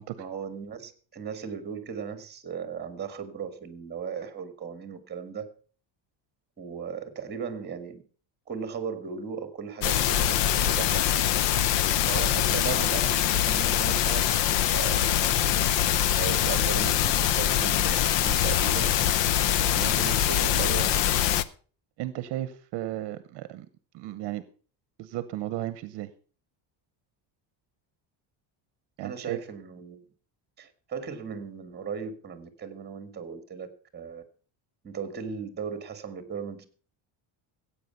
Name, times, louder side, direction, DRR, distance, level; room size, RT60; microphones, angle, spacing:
voice 1, 0.2-5.5 6.6-8.0 8.5-11.1 12.1-14.2 14.5-15.3 16.1-18.9 19.7-21.2 29.0-30.0 30.6-33.7 33.9-34.2 34.8-36.6, right 6 dB, 20° right, 11 dB, 1.7 m, -37 dB
sound 1, 9.8-21.4, left 11 dB, 65° left, 0.8 m, -24 dB
voice 2, 11.5-11.9 22.0-23.7 23.9-24.4 25.0-26.1 29.0-29.4, right 14 dB, 60° right, 14 dB, 0.9 m, -35 dB
15.0 x 8.6 x 5.6 m, 0.41 s
cardioid pair, 170°, 47 cm